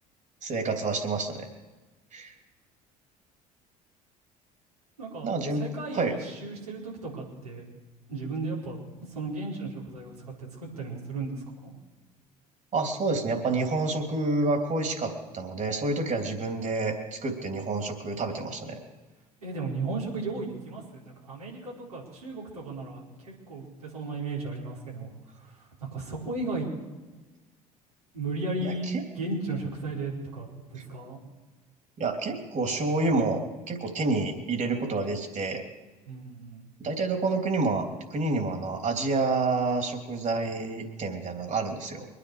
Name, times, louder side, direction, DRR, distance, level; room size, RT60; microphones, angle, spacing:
voice 1, 0.4-1.5 2.1-2.3 5.2-5.7 5.9-6.2 12.7-18.8 28.6-29.0 32.0-35.6 36.8-42.1, right 3 dB, 40° right, 4 dB, 3.4 m, -28 dB
voice 2, 5.0-5.3 5.6-7.7 8.1-8.8 9.1-11.7 19.4-26.7 28.1-31.2 36.1-36.6, right 3 dB, 85° right, -5 dB, 4.8 m, -35 dB
24.5 x 10.0 x 4.9 m, 1.2 s
figure-of-eight pair, 60°, 19 cm